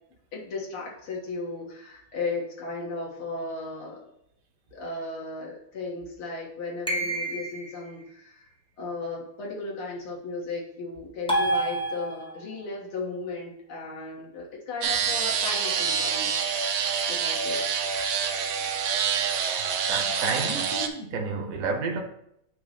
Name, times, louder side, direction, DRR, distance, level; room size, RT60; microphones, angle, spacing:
voice 1, 0.3-4.1 4.7-8.4 8.8-16.3 17.1-17.7, left 3 dB, 80° left, 2.3 m, -35 dB
sound 1, 6.9-7.8 11.3-12.5, right 2 dB, 5° left, 0.4 m, -28 dB
sound 2, 14.8-20.9, right 7 dB, 75° right, 1.4 m, -27 dB
voice 2, 19.9-22.0, right 4 dB, 50° right, 1.1 m, -30 dB
8.5 x 3.1 x 5.2 m
omnidirectional pair, 2.3 m